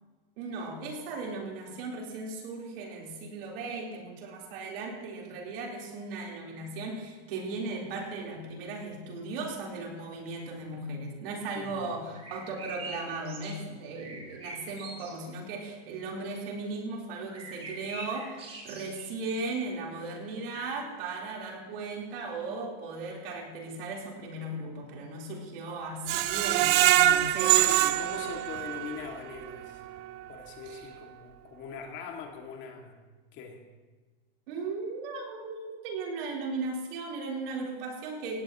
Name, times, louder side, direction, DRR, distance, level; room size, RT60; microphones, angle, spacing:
voice 1, 0.4-27.8 30.7-30.9 34.5-38.4, right 3 dB, 65° right, -2 dB, 4.0 m, -37 dB
voice 2, 11.5-11.9 27.6-29.8 30.3-33.0 33.3-33.6, left 6 dB, 35° left, 2 dB, 2.2 m, -42 dB
sound 1, 12.1-13.6 13.9-15.2 16.2-16.4 17.2-19.7 20.1-20.2 22.3-22.6 25.2-25.4, right 2 dB, 20° right, 2.4 m, -44 dB
Screech, 26.1-29.1 29.5-29.6 30.0-30.1, right 14 dB, 35° right, 0.5 m, -24 dB
17.0 x 16.5 x 3.1 m, 1.3 s
supercardioid pair, 130°, 31 cm